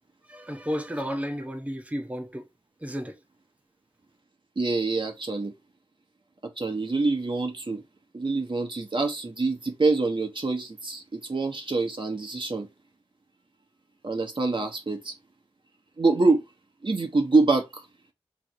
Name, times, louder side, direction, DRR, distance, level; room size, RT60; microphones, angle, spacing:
voice 1, 0.3-2.5 2.8-3.2, equal, 10° right, 1.0 m, -32 dB
voice 2, 4.6-5.5 6.6-7.8 8.1-12.7 14.0-15.1 16.0-16.4 16.8-17.8, right 3 dB, 45° right, 1.1 m, -25 dB
3.5 x 3.2 x 4.6 m
wide cardioid pair, 75°, 12 cm